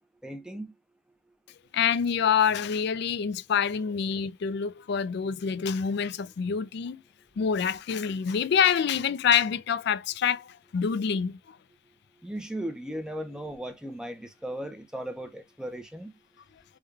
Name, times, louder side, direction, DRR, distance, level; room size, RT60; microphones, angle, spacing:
voice 1, 0.2-0.7 12.2-16.1, right 1 dB, 5° right, 0.5 m, -37 dB
voice 2, 1.7-7.0 7.4-11.6, left 7 dB, 55° left, 0.3 m, -26 dB
3.5 x 2.2 x 3.1 m
head